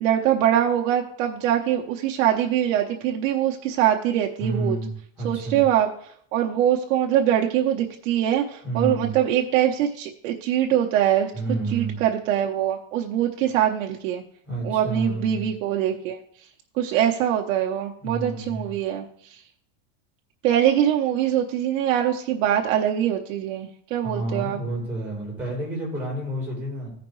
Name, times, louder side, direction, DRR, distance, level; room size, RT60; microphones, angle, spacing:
voice 1, 0.0-4.8 5.2-5.9 6.3-11.3 11.7-14.2 14.6-16.2 16.8-19.0 20.4-24.6, right 10 dB, 85° right, 1 dB, 1.0 m, -23 dB
voice 2, 4.4-4.9 5.2-5.6 8.6-9.2 11.3-12.0 14.4-15.4 18.0-18.7 24.0-26.9, right 2 dB, 5° right, -5 dB, 3.6 m, -29 dB
15.0 x 5.1 x 3.1 m, 0.63 s
cardioid pair, 175°, 38 cm